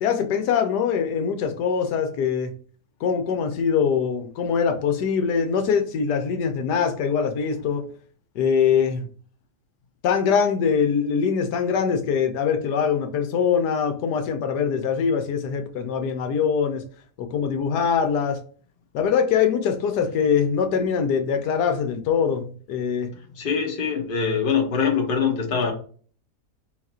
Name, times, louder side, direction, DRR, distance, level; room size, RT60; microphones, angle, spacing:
voice 1, 0.0-2.5 3.0-7.8 8.3-9.1 10.0-16.8 17.2-18.4 18.9-23.1, left 6 dB, 85° left, 6 dB, 1.3 m, -23 dB
voice 2, 23.1-25.7, left 6 dB, 40° left, 1 dB, 0.9 m, -24 dB
4.0 x 2.4 x 4.1 m, 0.43 s
omnidirectional pair, 1.7 m